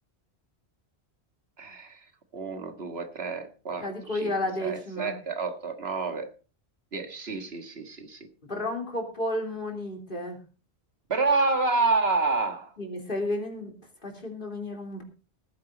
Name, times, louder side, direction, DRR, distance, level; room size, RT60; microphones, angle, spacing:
voice 1, 1.6-2.1 2.3-4.3 4.6-6.3 6.9-8.3 11.1-12.7, right 3 dB, 65° right, 1.9 m, -28 dB
voice 2, 3.8-5.1 8.4-10.4 12.8-13.7 14.0-15.0, left 1 dB, 50° left, 3.4 m, -32 dB
17.0 x 10.0 x 3.9 m
omnidirectional pair, 1.1 m